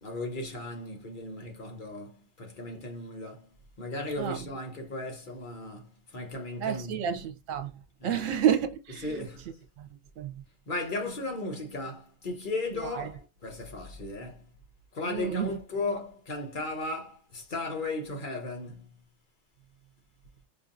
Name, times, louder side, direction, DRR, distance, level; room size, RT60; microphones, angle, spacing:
voice 1, 0.0-3.5 3.8-7.2 8.0-8.2 9.0-9.6 10.7-14.5 14.9-19.0, left 2 dB, 40° left, 1.0 m, -36 dB
voice 2, 4.2-4.5 6.6-7.7 8.0-9.3 9.8-9.9 10.2-10.4 12.7-13.1 15.0-15.5, right 9 dB, 80° right, 1.1 m, -30 dB
5.2 x 2.6 x 2.5 m
omnidirectional pair, 1.4 m